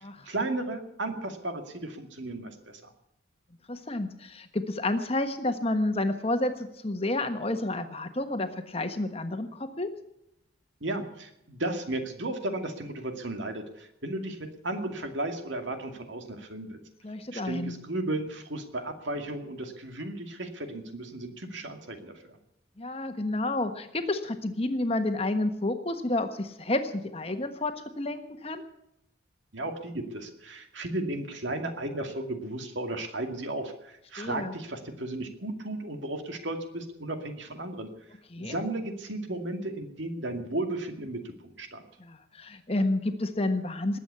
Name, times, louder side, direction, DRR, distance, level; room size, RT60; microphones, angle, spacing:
voice 1, 0.3-2.9 10.8-16.8 17.3-22.1 29.5-37.9 38.4-41.8, right 2 dB, 65° right, 6 dB, 2.4 m, -34 dB
voice 2, 3.7-9.9 17.0-17.7 22.8-28.6 34.2-34.5 38.3-38.6 42.0-44.0, left 2 dB, 30° left, 7 dB, 1.4 m, -30 dB
20.5 x 8.4 x 8.2 m, 0.82 s
head